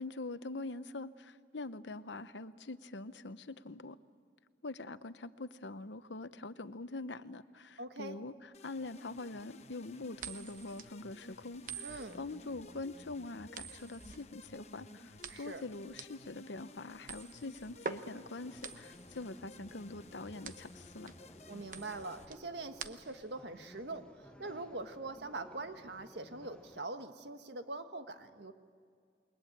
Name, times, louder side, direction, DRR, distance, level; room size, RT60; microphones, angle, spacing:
voice 1, 0.0-4.0 4.6-21.1, left 2 dB, 85° left, 13 dB, 0.9 m, -44 dB
voice 2, 7.8-8.2 11.8-12.2 15.3-15.6 21.5-28.5, right 2 dB, 75° right, 7 dB, 1.5 m, -43 dB
sound 1, 8.5-22.3, left 2 dB, 35° left, 1.0 m, -55 dB
sound 2, 10.2-23.4, right 5 dB, 45° right, 1.0 m, -47 dB
sound 3, 18.4-26.8, equal, 5° left, 0.9 m, -58 dB
28.5 x 22.0 x 8.7 m, 2.2 s
head